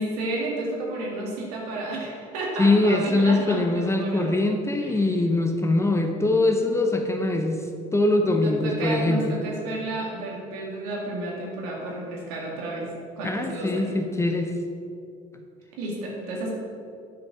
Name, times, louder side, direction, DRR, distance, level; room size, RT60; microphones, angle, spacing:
voice 1, 0.0-4.4 4.8-5.1 8.6-12.9 13.2-14.0 15.8-16.5, right 2 dB, 90° right, -3 dB, 1.9 m, -31 dB
voice 2, 2.6-7.6 7.9-9.3 13.2-14.5, left 2 dB, 15° left, 4 dB, 0.9 m, -22 dB
7.7 x 5.8 x 5.8 m, 2.4 s
supercardioid pair, 80°, 18 cm